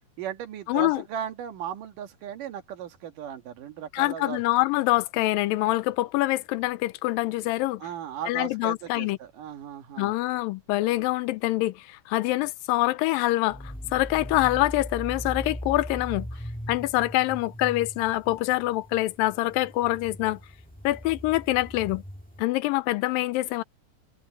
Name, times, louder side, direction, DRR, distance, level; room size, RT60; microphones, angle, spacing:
voice 1, 0.2-4.4 7.8-10.1, right 9 dB, 70° right, 3.3 m, -36 dB
voice 2, 0.7-1.0 3.9-7.8 8.3-9.2 10.0-16.3 16.7-20.4 20.8-22.0 22.4-23.6, left 18 dB, 85° left, 2.4 m, -25 dB
sound 1, 13.5-22.4, equal, 5° left, 1.0 m, -39 dB
omnidirectional pair, 4.0 m